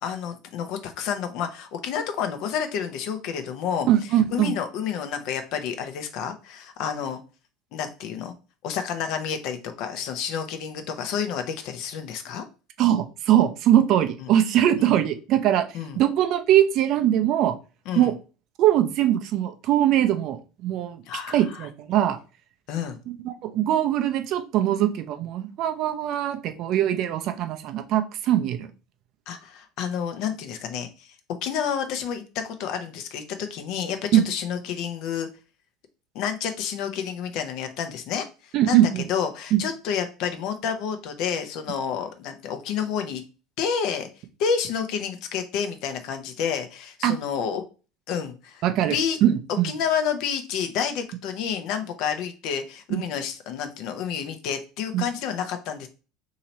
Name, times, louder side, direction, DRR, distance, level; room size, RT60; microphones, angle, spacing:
voice 1, 0.0-3.9 4.3-7.2 7.7-8.3 8.6-12.4 14.2-14.3 14.8-15.0 15.7-16.0 17.9-18.1 21.1-21.7 22.7-23.0 29.3-31.1 31.4-35.3 36.1-38.3 38.6-38.8 39.1-43.2 43.6-44.1 44.4-47.6 48.1-49.2 49.6-55.9, left 7 dB, 65° left, 7 dB, 0.7 m, -29 dB
voice 2, 3.9-4.5 12.8-15.6 16.0-17.5 17.9-18.1 18.6-21.0 21.3-22.2 23.2-28.7 34.1-34.2 38.5-39.1 39.5-39.6 47.0-47.1 48.6-49.7 52.9-53.0 54.9-55.0, right 11 dB, 55° right, 7 dB, 0.6 m, -21 dB
2.8 x 2.8 x 4.3 m, 0.33 s
hypercardioid pair, 80°, 0 cm